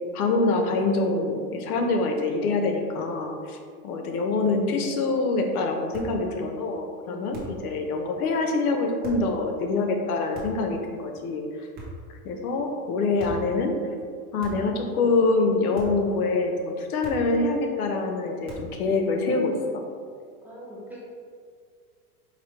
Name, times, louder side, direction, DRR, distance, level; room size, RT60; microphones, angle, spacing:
voice 1, 0.1-3.6 3.8-11.5 12.2-13.8 14.3-19.5, left 3 dB, 90° left, 3 dB, 0.7 m, -25 dB
sound 1, 5.9-6.2 7.3-7.7 9.0-9.3 10.3-10.7 11.7-12.1 13.2-13.5 14.4-14.8 15.7-16.1 17.0-17.4 18.4-18.8, right 1 dB, 20° right, 0.9 m, -40 dB
voice 2, 7.0-7.6 20.4-21.0, right 1 dB, 5° right, -8 dB, 0.5 m, -43 dB
4.8 x 2.6 x 3.1 m, 2.1 s
supercardioid pair, 130°, 44 cm